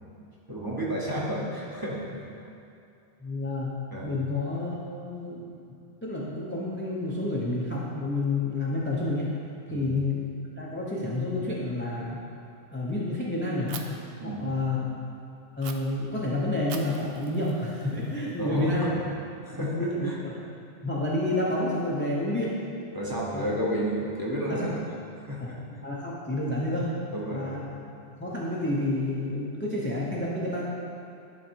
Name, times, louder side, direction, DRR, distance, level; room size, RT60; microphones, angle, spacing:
voice 1, 0.5-2.4 3.9-4.2 9.7-9.9 14.2-14.4 18.4-19.0 19.4-20.2 22.9-24.7 25.2-25.6 27.1-27.6, equal, 20° right, -5 dB, 1.0 m, -31 dB
voice 2, 3.2-3.7 4.0-4.8 5.0-5.5 6.0-9.3 9.7-10.3 10.6-12.2 12.7-13.8 14.2-14.9 15.6-18.9 19.5-20.4 20.8-22.6 23.3-23.4 24.5-24.7 25.4-25.5 25.8-27.0 27.3-27.8 28.2-30.6, left 2 dB, 10° left, -5 dB, 0.6 m, -29 dB
Fire, 13.7-13.8 15.6-15.7 16.7-18.6, right 7 dB, 60° right, 0.7 m, -43 dB
11.0 x 4.0 x 4.5 m, 2.6 s
omnidirectional pair, 1.3 m